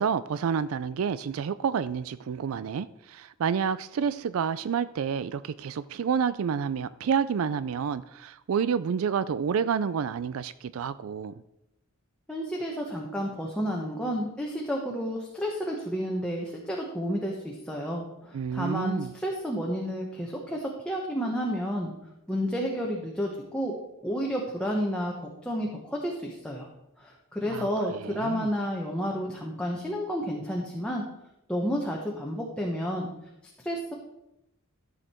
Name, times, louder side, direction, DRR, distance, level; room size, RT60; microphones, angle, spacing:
voice 1, 0.0-11.3 18.3-19.1 27.5-28.5, right 7 dB, 80° right, 15 dB, 0.4 m, -29 dB
voice 2, 12.3-21.9 22.3-23.7 24.0-26.7 27.0-31.0 31.5-33.1 33.6-33.9, equal, 5° left, -2 dB, 1.2 m, -31 dB
13.5 x 6.5 x 4.4 m, 0.88 s
head